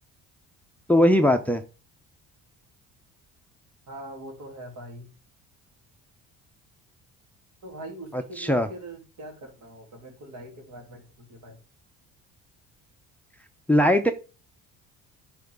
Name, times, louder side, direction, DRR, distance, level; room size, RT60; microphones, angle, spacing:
voice 1, 0.9-1.6 8.1-8.7 13.7-14.1, left 1 dB, 5° left, 0.7 m, -20 dB
voice 2, 3.9-5.1 7.6-11.6, right 1 dB, 65° right, 3.1 m, -42 dB
9.2 x 5.8 x 3.6 m
cardioid pair, 100°, 34 cm